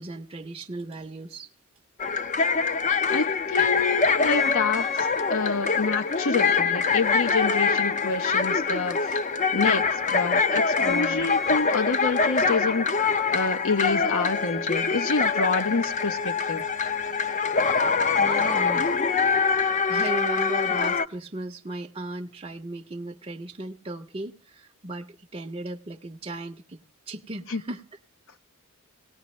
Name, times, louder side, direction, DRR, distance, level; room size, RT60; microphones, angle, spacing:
voice 1, 0.0-1.5 10.8-11.3 18.2-18.9 19.9-26.8 27.1-27.8, right 2 dB, 25° right, 0.7 m, -36 dB
sound 1, 2.0-21.1, left 5 dB, 35° left, 0.6 m, -24 dB
voice 2, 3.1-9.2 9.5-12.9 13.3-16.7 27.5-27.6, left 4 dB, 65° left, 0.9 m, -28 dB
18.5 x 17.5 x 3.1 m
head